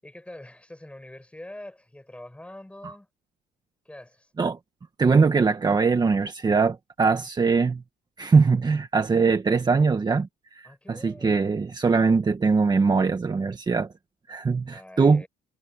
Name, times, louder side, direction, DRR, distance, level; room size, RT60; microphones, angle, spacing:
voice 1, 0.0-3.1 3.9-4.3 10.6-11.5 14.7-15.3, left 1 dB, 5° left, 7.0 m, -44 dB
voice 2, 5.0-7.8 8.2-13.9 14.3-15.2, right 4 dB, 25° right, 1.5 m, -22 dB
cardioid pair, 110°, 17 cm